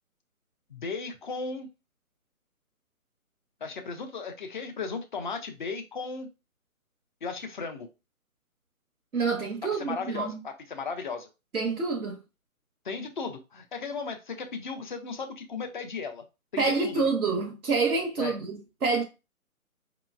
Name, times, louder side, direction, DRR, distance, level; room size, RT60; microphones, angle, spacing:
voice 1, 0.7-1.7 3.6-6.3 7.2-7.9 9.8-11.3 12.8-16.2 16.5-16.9 18.2-18.3, left 4 dB, 35° left, 0.6 m, -36 dB
voice 2, 9.1-10.4 11.5-12.2 16.6-19.0, right 4 dB, 90° right, 0.9 m, -27 dB
4.9 x 2.9 x 2.3 m
figure-of-eight pair, 140°, 42 cm